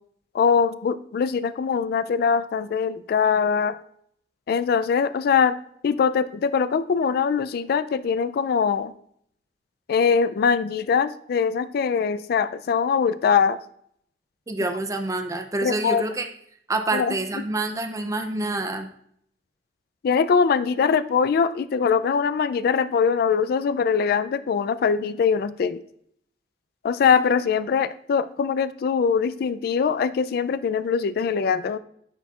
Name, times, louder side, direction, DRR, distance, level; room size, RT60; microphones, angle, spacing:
voice 1, 0.3-3.8 4.5-5.5 5.8-8.9 9.9-13.6 15.6-16.0 16.9-17.2 20.0-25.8 26.8-31.8, left 6 dB, 60° left, 14 dB, 0.3 m, -22 dB
voice 2, 14.5-16.3 16.7-18.9, right 2 dB, 20° right, 6 dB, 0.4 m, -27 dB
9.7 x 4.3 x 2.4 m, 0.67 s
head